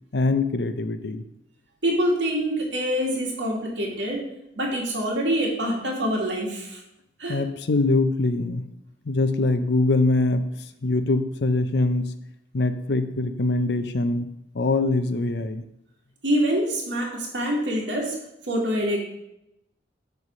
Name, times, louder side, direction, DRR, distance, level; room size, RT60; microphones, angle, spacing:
voice 1, 0.1-1.2 7.3-8.7 9.1-10.5 10.8-12.1 12.5-15.6, left 2 dB, 65° left, 10 dB, 0.6 m, -23 dB
voice 2, 1.8-4.2 4.6-6.8 7.2-7.4 16.2-18.2 18.4-19.0, equal, 75° right, -2 dB, 2.1 m, -25 dB
8.3 x 3.4 x 6.1 m, 0.85 s
head